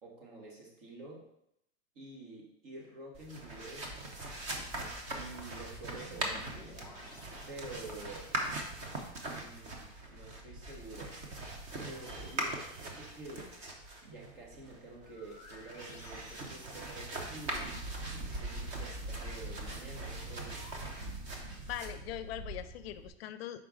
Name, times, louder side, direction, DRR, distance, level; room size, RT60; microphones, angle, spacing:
voice 1, 0.0-1.3 2.0-4.4 5.1-6.8 7.5-8.3 9.3-11.1 11.8-13.5 14.0-17.8 18.2-20.7, right 2 dB, 50° right, -2 dB, 2.0 m, -49 dB
sound 1, 3.1-23.1, right 2 dB, 20° right, 0.6 m, -41 dB
sound 2, 3.9-8.5 11.8-13.6 15.0-17.6 20.3-20.8, left 2 dB, 10° left, 1.3 m, -55 dB
voice 2, 21.7-23.6, left 12 dB, 60° left, 12 dB, 0.5 m, -41 dB
5.9 x 4.7 x 3.7 m, 0.78 s
supercardioid pair, 175°, 34 cm